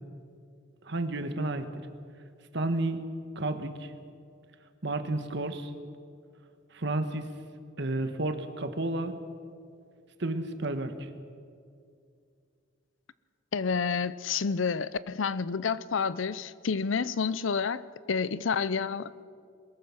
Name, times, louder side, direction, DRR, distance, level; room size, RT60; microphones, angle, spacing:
voice 1, 0.8-1.7 2.5-3.0 3.3-3.9 4.8-5.7 6.7-7.3 7.8-9.1 10.2-11.1, right 2 dB, 60° right, 1.5 m, -31 dB
voice 2, 13.5-19.2, left 5 dB, 75° left, 0.6 m, -29 dB
22.0 x 20.5 x 5.9 m
head